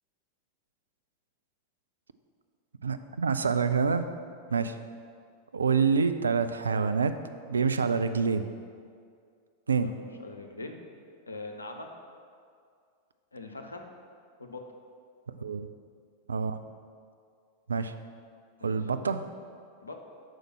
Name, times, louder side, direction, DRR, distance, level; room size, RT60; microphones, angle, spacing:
voice 1, 2.8-4.0 4.5-4.8 5.5-7.2 7.5-8.5 9.7-9.9 15.4-15.7 16.3-16.6 17.7-17.9 18.6-19.2, right 5 dB, 75° right, 10 dB, 0.4 m, -26 dB
voice 2, 9.8-10.8 11.3-11.9 13.3-13.9 14.4-14.6 18.6-18.8 19.8-19.9, left 2 dB, 80° left, 3 dB, 0.7 m, -42 dB
6.4 x 5.2 x 6.2 m, 2.2 s
figure-of-eight pair, 90°, 0 cm